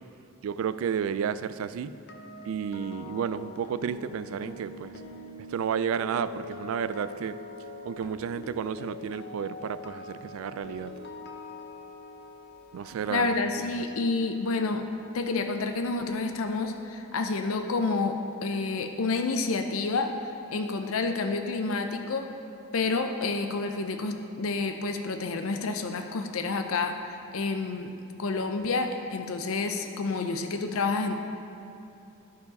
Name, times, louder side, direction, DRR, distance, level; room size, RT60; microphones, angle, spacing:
voice 1, 0.4-2.0 2.4-5.0 5.5-7.4 7.8-10.9 12.7-13.8, right 7 dB, 75° right, 14 dB, 0.3 m, -32 dB
sound 1, 1.9-15.9 16.2-16.5, left 3 dB, 55° left, 0.9 m, -44 dB
voice 2, 13.1-14.8 15.1-20.1 20.5-22.3 22.7-26.9 27.3-27.9 28.2-31.2, left 3 dB, 85° left, 6 dB, 0.6 m, -29 dB
13.5 x 4.7 x 5.3 m, 2.7 s
head